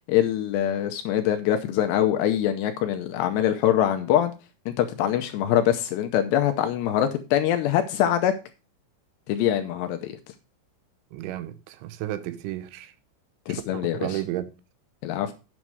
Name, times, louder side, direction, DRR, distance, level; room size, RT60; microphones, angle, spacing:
voice 1, 0.1-4.3 4.7-8.3 9.3-10.2 13.5-14.2 15.0-15.3, left 11 dB, 80° left, 2.6 m, -24 dB
voice 2, 11.1-12.9 13.5-14.5, right 14 dB, 85° right, 3.2 m, -32 dB
9.0 x 7.3 x 4.7 m
omnidirectional pair, 5.5 m